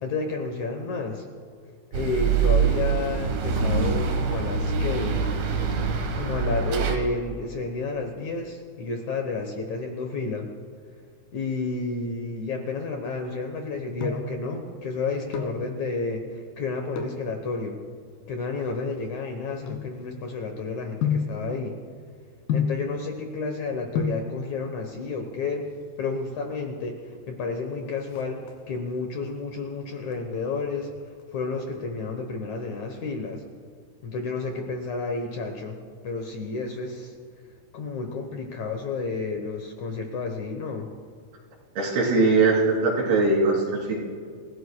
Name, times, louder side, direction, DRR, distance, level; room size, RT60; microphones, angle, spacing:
voice 1, 0.0-1.3 1.9-5.2 6.2-10.5 11.3-17.8 18.3-21.8 22.5-25.7 26.0-30.9 31.3-33.4 34.0-35.8 36.0-37.1 37.7-40.9, left 3 dB, 65° left, 4 dB, 1.9 m, -31 dB
sound 1, 1.9-7.0, right 5 dB, 70° right, 3.2 m, -24 dB
sound 2, 13.8-14.4 15.1-15.7 16.9-17.3 18.0-20.4 21.0-21.4 22.5-22.9 23.7-23.8 24.0-24.3 25.4-26.0 26.3-26.4 26.6-26.7 27.1-27.5 27.8-28.8 29.3-29.7 30.1-31.2 31.5-31.6, left 6 dB, 85° left, 3.6 m, -30 dB
voice 2, 41.8-43.9, right 3 dB, 90° right, -3 dB, 5.2 m, -21 dB
28.0 x 16.0 x 2.3 m, 2.2 s
omnidirectional pair, 4.5 m